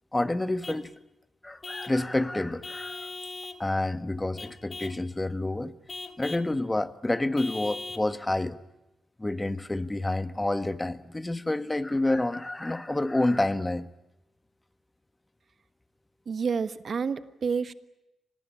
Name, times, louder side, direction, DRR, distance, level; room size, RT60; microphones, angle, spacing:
voice 1, 0.1-1.0 1.4-3.1 3.6-5.7 6.2-8.6 9.2-13.9, left 2 dB, 15° left, 13 dB, 1.3 m, -28 dB
Vehicle horn car horn honking / Truck, 0.6-0.9 1.6-2.0 2.6-3.6 4.4-5.0 5.9-6.5 7.4-8.1, left 3 dB, 40° left, 2.3 m, -40 dB
voice 2, 16.2-17.7, right 5 dB, 55° right, 13 dB, 1.3 m, -29 dB
25.0 x 19.0 x 10.0 m, 0.93 s
cardioid pair, 65°, 0 cm